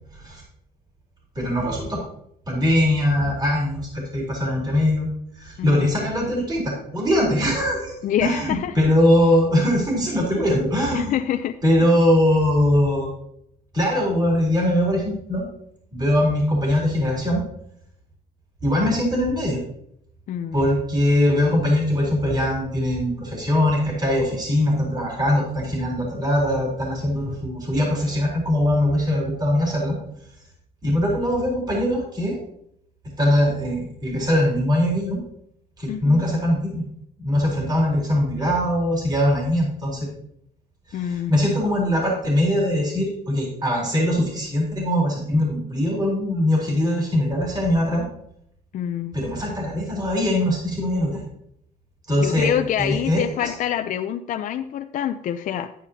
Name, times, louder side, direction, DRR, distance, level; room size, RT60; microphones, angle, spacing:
voice 1, 0.1-0.4 1.4-2.0 2.5-5.1 5.3-11.1 11.6-13.1 13.7-15.4 15.9-17.4 18.6-19.6 20.5-29.9 30.8-32.4 33.2-35.2 35.8-36.8 37.2-40.1 40.9-48.0 49.1-51.2 52.1-52.5 52.8-53.5, left 1 dB, 25° right, -2 dB, 3.8 m, -21 dB
voice 2, 5.6-5.9 8.0-8.7 10.9-11.6 20.3-20.6 35.9-36.2 40.9-41.3 48.7-49.1 52.2-55.7, left 10 dB, 50° left, 7 dB, 0.5 m, -26 dB
10.0 x 9.8 x 2.8 m, 0.73 s
cardioid pair, 110°, 17 cm